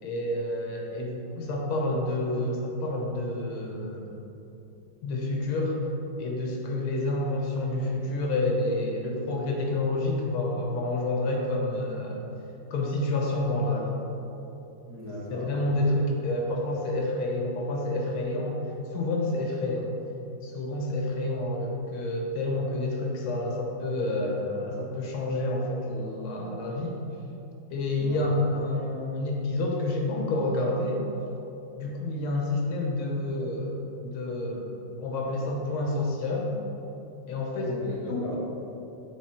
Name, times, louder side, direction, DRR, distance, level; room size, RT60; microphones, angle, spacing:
voice 1, 0.0-4.1 5.0-5.9 6.2-12.3 12.7-14.0 15.3-18.6 18.9-19.9 20.4-27.0 27.7-31.0 31.8-34.7 35.0-36.6 37.3-37.7 38.1-38.2, left 2 dB, 80° left, 0 dB, 1.8 m, -29 dB
voice 2, 14.8-15.5 27.9-28.2 37.6-38.4, equal, 10° right, -8 dB, 1.1 m, -37 dB
7.6 x 4.2 x 4.3 m, 3.0 s
omnidirectional pair, 2.2 m